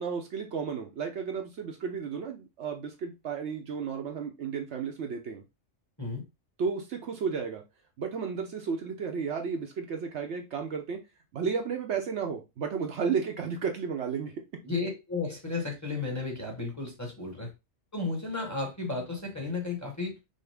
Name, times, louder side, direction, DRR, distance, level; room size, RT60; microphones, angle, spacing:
voice 1, 0.0-5.4 6.6-7.6 8.0-11.0 11.3-14.4, right 6 dB, 65° right, 0.9 m, -33 dB
voice 2, 14.6-17.5 17.9-20.2, left 3 dB, 15° left, 1.0 m, -33 dB
5.5 x 2.1 x 3.4 m
omnidirectional pair, 1.4 m